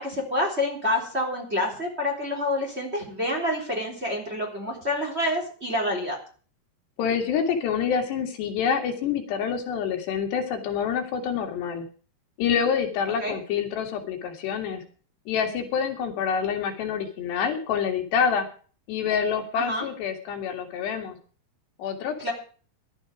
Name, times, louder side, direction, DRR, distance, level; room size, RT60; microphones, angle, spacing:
voice 1, 0.0-6.2 13.2-13.3 19.6-19.8 22.2-22.3, left 1 dB, 15° right, 1 dB, 3.5 m, -27 dB
voice 2, 7.0-11.8 12.4-14.8 15.3-18.5 18.9-21.2 21.8-22.3, left 7 dB, 80° left, 4 dB, 4.3 m, -27 dB
18.0 x 11.5 x 5.0 m, 0.41 s
omnidirectional pair, 4.9 m